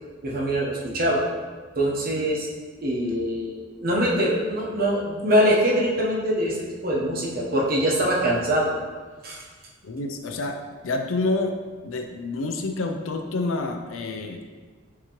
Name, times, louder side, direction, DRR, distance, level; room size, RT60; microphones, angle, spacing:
voice 1, 0.2-1.2 1.8-2.5 2.8-6.6 6.8-8.7 9.2-9.4, equal, 45° right, -3 dB, 0.9 m, -23 dB
voice 2, 9.8-10.6 10.8-11.6 11.8-14.6, left 2 dB, 85° left, 5 dB, 0.5 m, -28 dB
5.9 x 2.9 x 3.0 m, 1.4 s
head